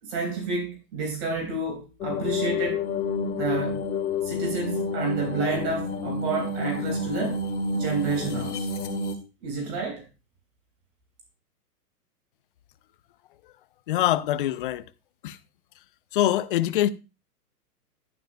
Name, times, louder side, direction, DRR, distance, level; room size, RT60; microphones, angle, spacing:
voice 1, 0.0-2.9 3.4-3.8 4.2-7.4 7.7-8.7 9.4-10.0, right 4 dB, 45° right, 4.0 m, -30 dB
sound 1, 2.0-9.2, left 3 dB, 70° left, 2.0 m, -29 dB
voice 2, 13.9-14.8 15.2-15.4 16.1-16.9, left 13 dB, 35° left, 0.4 m, -24 dB
12.0 x 10.0 x 2.2 m
hypercardioid pair, 135°, 47 cm